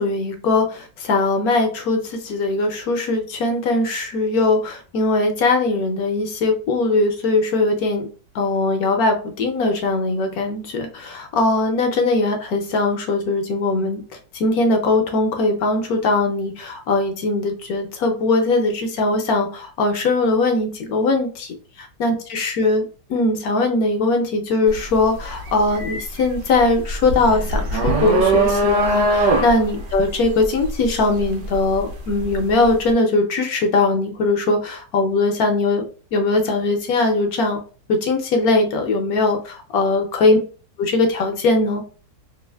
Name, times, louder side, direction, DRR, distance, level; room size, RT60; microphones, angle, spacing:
voice 1, 0.0-8.0 8.3-14.0 14.3-22.8 23.1-35.8 36.1-37.6 37.9-40.4 40.8-41.8, left 2 dB, 70° left, 4 dB, 0.9 m, -20 dB
sound 1, 24.7-24.9 25.3-32.3, right 2 dB, 75° right, 1.2 m, -21 dB
3.2 x 2.4 x 2.2 m, 0.38 s
omnidirectional pair, 2.0 m